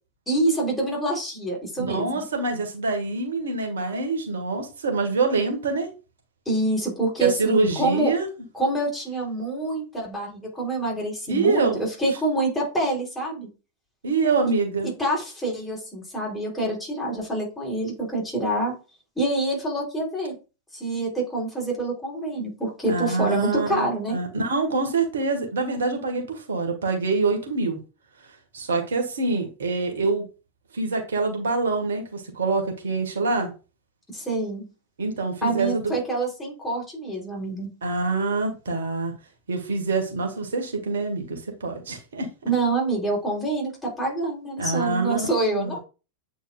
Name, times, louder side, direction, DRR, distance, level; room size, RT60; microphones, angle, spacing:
voice 1, 0.3-2.2 6.5-8.2 8.5-13.5 14.8-18.7 19.2-20.3 20.7-24.2 34.1-34.7 35.4-37.7 42.5-45.8, right 2 dB, 5° left, 3.6 m, -26 dB
voice 2, 1.8-5.9 7.2-8.3 11.3-11.8 14.0-14.9 22.9-27.8 28.5-30.3 30.7-33.5 35.0-35.9 37.8-39.1 39.5-42.3 44.6-45.8, right 3 dB, 65° right, 1.7 m, -25 dB
8.5 x 4.6 x 2.5 m
figure-of-eight pair, 90°, 0 cm